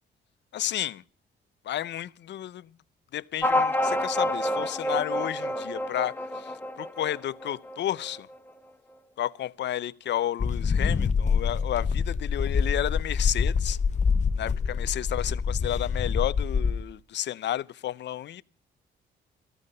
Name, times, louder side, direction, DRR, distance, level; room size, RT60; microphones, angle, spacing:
voice 1, 0.5-1.0 1.6-2.7 3.1-8.3 9.2-13.8 14.4-18.4, left 12 dB, 65° left, 0.6 m, -32 dB
sound 1, 3.4-8.4, left 1 dB, 10° left, 1.2 m, -28 dB
sound 2, 10.4-16.8, left 5 dB, 35° left, 0.9 m, -26 dB
14.5 x 13.5 x 5.4 m
cardioid pair, 90°, 20 cm